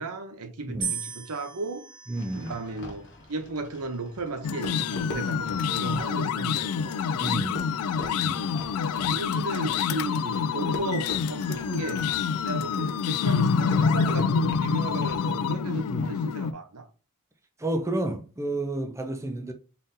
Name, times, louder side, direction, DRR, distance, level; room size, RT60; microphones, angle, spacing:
voice 1, 0.0-1.9 2.3-7.2 7.5-7.6 9.1-12.0 12.4-16.9, right 3 dB, 80° right, 0.8 m, -35 dB
sound 1, 0.8-3.0 3.8-4.4, right 6 dB, 60° right, 1.3 m, -37 dB
Fireworks, 2.1-16.0, left 1 dB, 55° left, 1.1 m, -43 dB
voice 2, 2.1-2.5 7.2-7.7 8.2-8.5 15.9-16.1 17.6-19.5, right 1 dB, 15° right, 0.5 m, -30 dB
sound 2, 4.4-16.5, left 6 dB, 75° left, 0.3 m, -27 dB
3.9 x 3.7 x 2.6 m
head